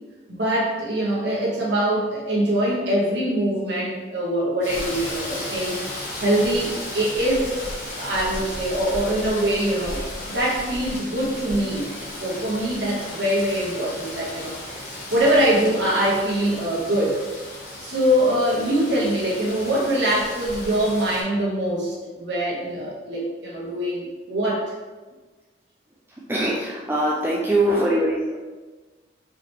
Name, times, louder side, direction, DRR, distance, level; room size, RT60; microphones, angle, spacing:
voice 1, 0.3-5.8 6.2-7.5 7.9-10.0 10.3-11.9 12.2-14.6 15.1-17.2 17.8-24.7, right 1 dB, 70° right, -5 dB, 1.2 m, -23 dB
Rain, 4.6-21.2, left 1 dB, 40° left, 1.1 m, -35 dB
voice 2, 26.3-28.4, right 1 dB, 10° right, -5 dB, 0.4 m, -22 dB
4.9 x 3.3 x 2.9 m, 1.3 s
head